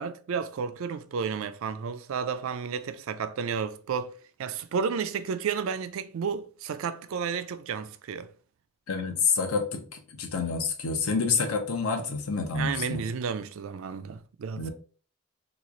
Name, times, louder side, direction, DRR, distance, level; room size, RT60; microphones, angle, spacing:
voice 1, 0.0-4.1 4.4-8.3 12.6-14.7, right 6 dB, 70° right, 0.3 m, -32 dB
voice 2, 8.9-13.1 14.6-14.7, left 5 dB, 80° left, 0.7 m, -28 dB
3.0 x 2.3 x 3.8 m
head